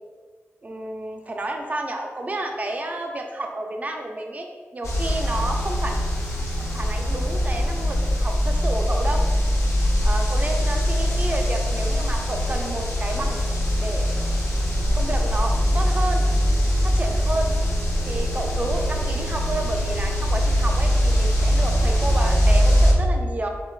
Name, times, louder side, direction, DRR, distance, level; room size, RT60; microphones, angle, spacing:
voice 1, 0.6-4.5 4.7-6.0 6.7-9.3 10.0-13.4 13.8-14.1 14.9-16.2 16.8-17.5 18.0-23.5, right 2 dB, 30° right, 3 dB, 0.5 m, -30 dB
sound 1, 4.8-22.9, equal, 85° left, 0.8 m, -22 dB
4.3 x 3.8 x 2.4 m, 1.5 s
wide cardioid pair, 120°, 5 cm